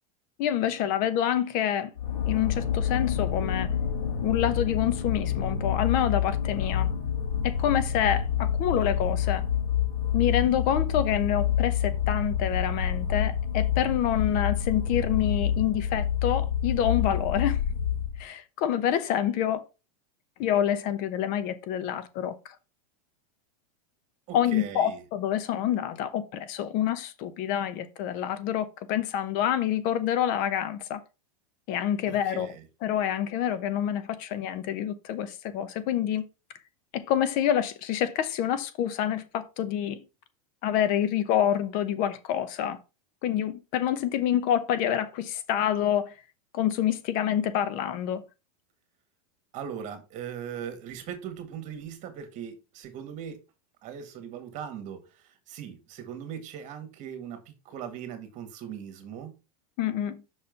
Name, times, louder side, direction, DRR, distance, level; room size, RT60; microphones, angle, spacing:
voice 1, 0.4-1.9 2.3-3.8 4.2-6.9 7.4-9.5 10.1-17.6 18.2-19.6 20.4-22.3 24.3-31.0 31.7-32.5 32.8-36.2 36.9-40.0 40.6-42.8 43.2-46.2 46.5-48.2 59.8-60.2, left 10 dB, 50° left, 0.9 m, -27 dB
sound 1, 2.0-18.2, left 9 dB, 90° left, 1.7 m, -28 dB
voice 2, 24.3-25.0 32.1-32.6 49.5-53.4 53.8-59.3, right 8 dB, 40° right, 2.0 m, -39 dB
6.1 x 4.4 x 5.2 m
supercardioid pair, 130°, 19 cm